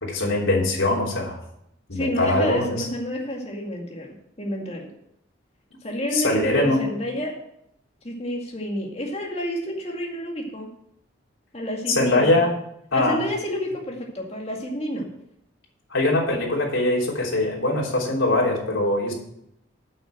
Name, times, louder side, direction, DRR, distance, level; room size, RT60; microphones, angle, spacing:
voice 1, 0.0-1.4 1.9-2.9 6.1-6.8 11.9-12.5 12.9-13.2 15.9-19.1, left 2 dB, 85° left, -3 dB, 3.5 m, -22 dB
voice 2, 1.9-4.9 5.8-7.4 8.0-10.7 11.5-12.4 12.9-15.1, equal, 30° left, 0 dB, 2.1 m, -29 dB
8.9 x 6.4 x 7.7 m, 0.77 s
head